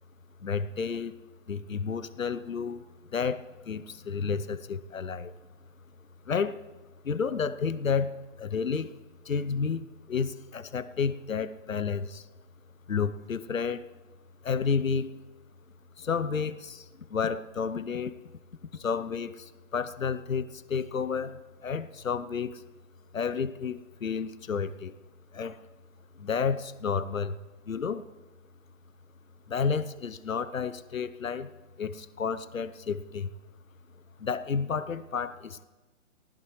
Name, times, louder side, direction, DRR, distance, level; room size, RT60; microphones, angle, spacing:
voice 1, 0.4-1.2 1.5-2.8 3.1-5.3 6.3-6.6 7.0-9.0 9.2-12.3 12.9-13.8 14.4-15.1 16.0-18.2 18.7-22.6 23.1-24.9 25.3-25.6 26.2-27.4 27.7-28.1 29.5-31.5 31.8-33.3 34.2-35.6, left 6 dB, 80° left, 15 dB, 0.9 m, -31 dB
19.0 x 17.0 x 3.2 m, 1.3 s
figure-of-eight pair, 140°, 40 cm